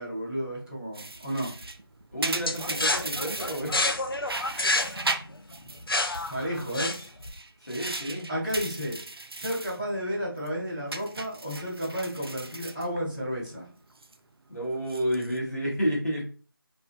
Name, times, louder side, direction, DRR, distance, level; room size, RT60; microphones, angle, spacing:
voice 1, 0.0-1.5 6.3-6.9 8.3-9.0 9.3-13.7, equal, 10° left, -15 dB, 0.7 m, -32 dB
sound 1, 0.9-3.9 4.2-5.8 6.1-9.8 10.1-10.5 10.9-13.5 13.8-14.2 14.8-15.4, right 2 dB, 75° right, 0.4 m, -37 dB
voice 2, 2.1-3.8 7.6-8.3 14.5-16.3, equal, 40° left, -4 dB, 0.9 m, -30 dB
sound 2, 2.5-7.3, left 2 dB, 65° left, 0.4 m, -29 dB
2.5 x 2.1 x 2.5 m, 0.38 s
figure-of-eight pair, 175°, 13 cm